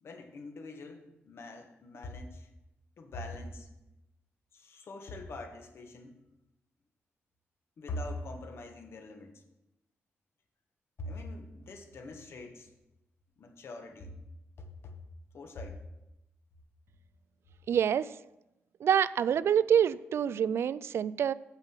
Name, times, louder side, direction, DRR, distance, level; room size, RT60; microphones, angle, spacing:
voice 1, 0.0-2.5 3.0-3.7 4.5-6.2 7.8-9.3 11.0-12.7 13.4-14.2 14.6-14.9 15.3-15.8, left 2 dB, 60° left, 4 dB, 1.4 m, -43 dB
voice 2, 17.7-18.1 18.8-21.3, right 8 dB, 65° right, 17 dB, 0.3 m, -26 dB
8.9 x 7.2 x 5.7 m, 0.93 s
wide cardioid pair, 140°, 5 cm